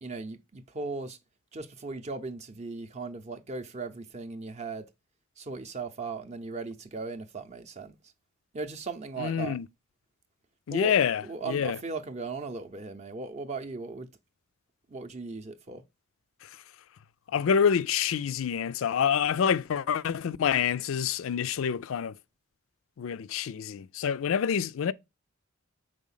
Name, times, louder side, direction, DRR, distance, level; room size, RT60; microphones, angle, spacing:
voice 1, 0.0-1.2 1.5-4.9 5.4-8.0 8.5-9.6 10.7-14.1 14.9-15.8, right 4 dB, 30° right, 0.6 m, -37 dB
voice 2, 9.2-9.7 10.7-11.8 16.4-16.5 17.3-22.1 23.0-24.9, left 7 dB, 70° left, 0.4 m, -27 dB
5.0 x 4.0 x 5.5 m
head